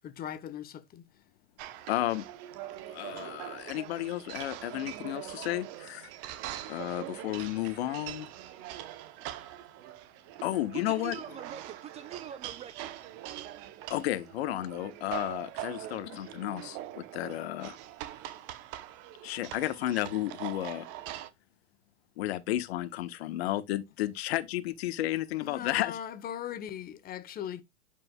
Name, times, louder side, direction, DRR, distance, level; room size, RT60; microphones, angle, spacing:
voice 1, 0.0-1.0 25.4-27.6, left 10 dB, 25° left, 1.2 m, -39 dB
sound 1, 1.6-21.3, right 13 dB, 40° right, 1.0 m, -43 dB
voice 2, 1.9-2.2 2.9-6.1 6.7-8.3 10.4-11.1 13.9-17.8 19.2-20.8 22.2-26.0, left 15 dB, 60° left, 1.3 m, -32 dB
voice 3, 10.7-12.9, right 9 dB, 20° right, 0.4 m, -43 dB
11.0 x 5.3 x 2.4 m
hypercardioid pair, 115°, 35 cm